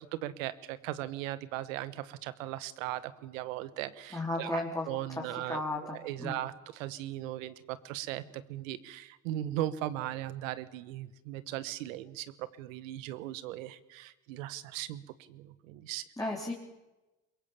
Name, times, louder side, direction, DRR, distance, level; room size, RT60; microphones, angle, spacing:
voice 1, 0.0-4.6 4.9-15.0 15.3-16.0, right 14 dB, 80° right, 16 dB, 1.3 m, -38 dB
voice 2, 4.1-4.9 5.5-6.4 16.2-16.5, left 2 dB, 10° left, -2 dB, 3.7 m, -34 dB
22.5 x 22.5 x 7.2 m, 1.0 s
hypercardioid pair, 65°, 39 cm